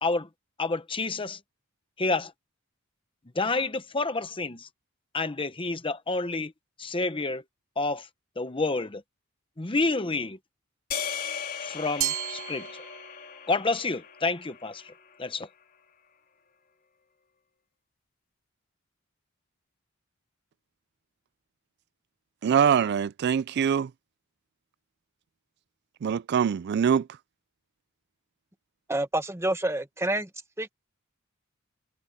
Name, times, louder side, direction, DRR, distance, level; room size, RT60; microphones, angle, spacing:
voice 1, 0.6-1.4 2.0-2.3 3.3-4.7 5.1-6.5 6.8-7.4 7.8-8.1 8.4-9.0 9.6-10.4 11.6-12.7 13.5-14.9 15.2-15.5, left 3 dB, 25° left, 0.9 m, -29 dB
sound 1, 10.9-15.3, left 7 dB, 45° left, 4.2 m, -37 dB
Glass, 12.0-13.4, right 12 dB, 80° right, 1.0 m, -33 dB
voice 2, 22.4-23.9 26.0-27.1, right 7 dB, 55° right, 0.3 m, -23 dB
voice 3, 28.9-30.3 30.6-30.7, right 1 dB, 15° right, 1.3 m, -28 dB
head